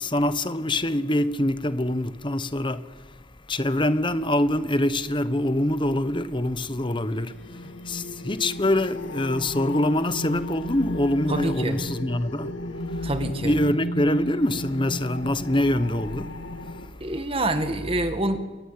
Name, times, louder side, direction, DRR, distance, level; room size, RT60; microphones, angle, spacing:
voice 1, 0.0-3.0 3.5-12.5 12.9-13.1 13.4-17.1, left 1 dB, 25° left, 1.1 m, -25 dB
sound 1, 6.7-16.9, left 1 dB, 75° left, 2.1 m, -35 dB
voice 2, 11.3-11.8 13.0-13.6 17.0-18.4, right 1 dB, 30° right, 1.9 m, -26 dB
28.5 x 22.5 x 8.9 m
head